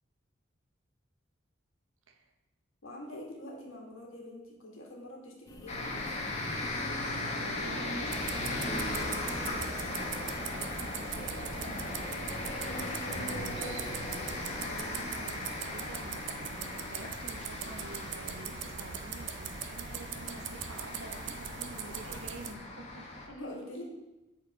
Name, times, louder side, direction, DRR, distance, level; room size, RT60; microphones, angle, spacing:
voice 1, 2.8-6.2 12.6-13.8 14.5-14.9 23.3-23.8, left 1 dB, 80° left, -1 dB, 1.7 m, -44 dB
sound 1, 5.5-14.8, equal, 15° left, 0.6 m, -52 dB
sound 2, 5.7-23.3, left 2 dB, 30° left, 1.0 m, -37 dB
voice 2, 7.4-12.2 13.1-14.0 14.8-23.1, right 2 dB, 85° right, 4 dB, 1.0 m, -49 dB
sound 3, 8.1-22.5, right 7 dB, 60° right, 0.5 m, -41 dB
7.4 x 4.3 x 4.8 m, 1.0 s
head